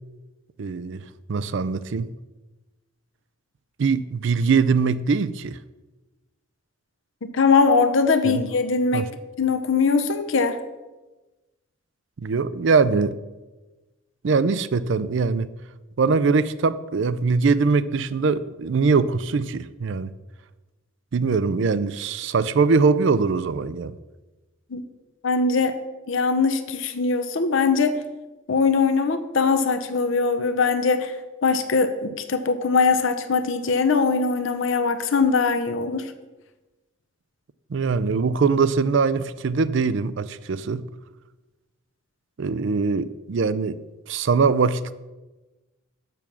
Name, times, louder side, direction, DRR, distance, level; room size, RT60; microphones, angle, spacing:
voice 1, 0.6-1.0 1.3-2.1 3.8-5.6 8.2-8.4 8.9-9.1 12.2-13.1 14.2-15.5 16.0-20.1 21.1-23.9 37.7-40.8 42.4-43.8 44.1-44.9, right 4 dB, 60° right, 15 dB, 0.4 m, -22 dB
voice 2, 7.2-9.1 9.4-10.6 24.7-24.8 25.2-25.8 26.1-27.9 28.5-31.1 31.4-36.1, left 4 dB, 65° left, 9 dB, 0.6 m, -21 dB
6.9 x 6.0 x 7.0 m, 1.1 s
head